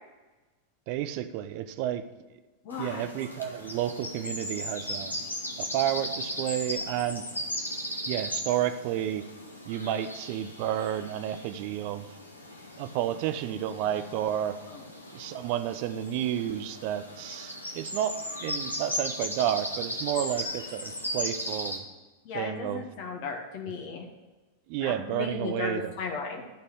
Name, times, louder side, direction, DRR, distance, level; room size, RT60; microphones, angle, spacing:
voice 1, 0.9-2.0 2.8-5.1 5.6-7.2 8.1-9.3 9.6-12.2 12.8-14.6 15.1-21.8 22.3-22.8 24.7-25.9, right 11 dB, 45° right, 10 dB, 0.7 m, -31 dB
voice 2, 2.6-3.1 14.7-14.8 22.2-24.1 24.8-26.5, left 4 dB, 45° left, 2 dB, 1.3 m, -35 dB
sound 1, 2.7-21.8, equal, 80° left, 1.2 m, -37 dB
12.0 x 4.2 x 8.1 m, 1.2 s
figure-of-eight pair, 90°, 0 cm